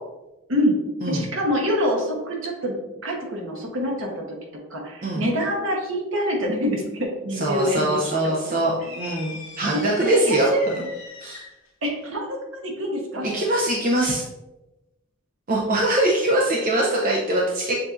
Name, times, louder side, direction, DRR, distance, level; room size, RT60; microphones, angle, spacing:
voice 1, 1.1-2.8 3.0-4.4 4.7-8.3 9.7-10.7 11.8-12.4 12.6-13.4, equal, 70° right, 0 dB, 1.1 m, -25 dB
voice 2, 7.4-10.8 11.2-11.4 13.2-14.2 15.5-17.8, right 1 dB, 40° right, -4 dB, 0.6 m, -22 dB
sound 1, 8.8-11.7, left 4 dB, 70° left, 1.1 m, -41 dB
6.9 x 2.6 x 2.5 m, 0.99 s
head